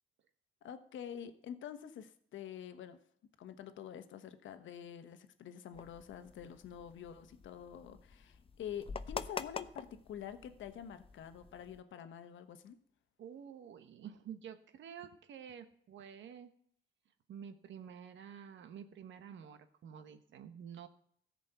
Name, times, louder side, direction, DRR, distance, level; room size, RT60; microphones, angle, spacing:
voice 1, 0.6-3.0 3.4-12.8, left 9 dB, 75° left, 10 dB, 1.1 m, -47 dB
sound 1, 5.7-11.8, left 5 dB, 30° left, 0.5 m, -47 dB
voice 2, 13.2-16.5 17.3-20.9, right 8 dB, 70° right, 9 dB, 1.1 m, -50 dB
13.5 x 5.3 x 8.1 m, 0.65 s
cardioid pair, 90°, 20 cm